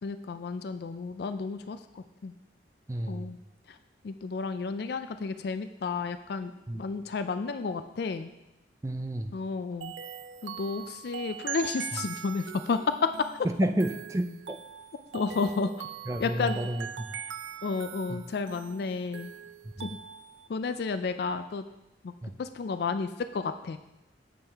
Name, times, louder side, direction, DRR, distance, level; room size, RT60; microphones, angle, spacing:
voice 1, 0.0-2.3 3.1-3.4 3.7-3.8 4.0-8.3 9.3-9.9 10.4-13.3 15.1-15.7 16.2-16.6 17.6-19.3 19.8-20.0 20.5-21.6 22.0-22.1 22.4-23.8, left 4 dB, 55° left, 10 dB, 0.4 m, -32 dB
voice 2, 2.9-3.3 6.7-6.8 8.8-9.3 13.6-14.6 15.5-15.7 16.1-17.1 18.1-18.2 19.6-19.9 22.2-22.3, right 1 dB, 15° right, 7 dB, 0.4 m, -31 dB
sound 1, 9.8-20.5, right 8 dB, 80° right, 0.5 m, -41 dB
8.7 x 7.3 x 3.4 m, 0.95 s
head